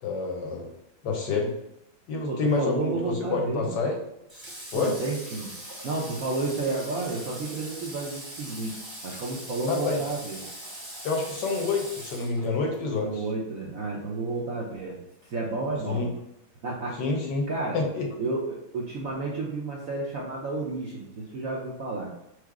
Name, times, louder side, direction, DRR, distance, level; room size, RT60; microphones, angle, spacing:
voice 1, 0.0-0.7 1.0-1.5 2.1-4.0 4.7-4.9 9.6-10.0 11.0-13.2 15.9-16.1 17.0-17.5 17.7-18.1, left 4 dB, 65° left, 1 dB, 1.2 m, -28 dB
voice 2, 2.3-3.8 4.7-5.5 5.8-8.7 9.0-10.4 13.0-15.0 15.2-16.1 16.6-17.0 17.5-17.8 18.2-22.1, right 3 dB, 65° right, -3 dB, 0.8 m, -31 dB
Water / Water tap faucet, 4.3-12.8, right 1 dB, 20° right, 0.8 m, -41 dB
4.8 x 2.0 x 4.6 m, 0.83 s
omnidirectional pair, 2.2 m